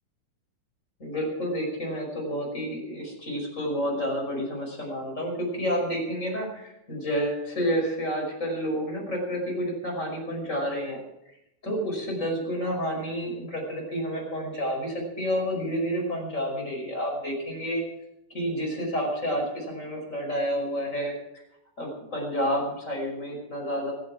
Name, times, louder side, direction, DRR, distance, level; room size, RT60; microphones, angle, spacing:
voice 1, 1.0-11.0 11.6-17.8 18.3-21.1 21.8-23.9, equal, 15° left, -1 dB, 5.4 m, -29 dB
25.5 x 8.9 x 4.8 m, 0.83 s
omnidirectional pair, 4.8 m